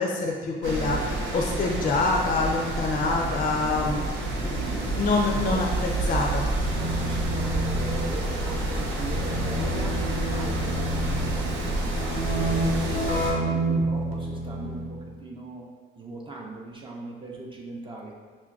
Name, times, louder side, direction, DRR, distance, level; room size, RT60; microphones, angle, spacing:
voice 1, 0.0-4.0 4.4-6.5, left 3 dB, 45° left, 0 dB, 0.5 m, -26 dB
sound 1, 0.6-13.3, right 2 dB, 75° right, 0.7 m, -29 dB
Keyboard (musical), 6.6-15.0, equal, 85° left, 0.6 m, -29 dB
voice 2, 6.8-15.7 16.0-18.1, right 3 dB, 25° right, -2 dB, 0.4 m, -39 dB
5.7 x 2.2 x 2.4 m, 1.5 s
cardioid pair, 90°, 20 cm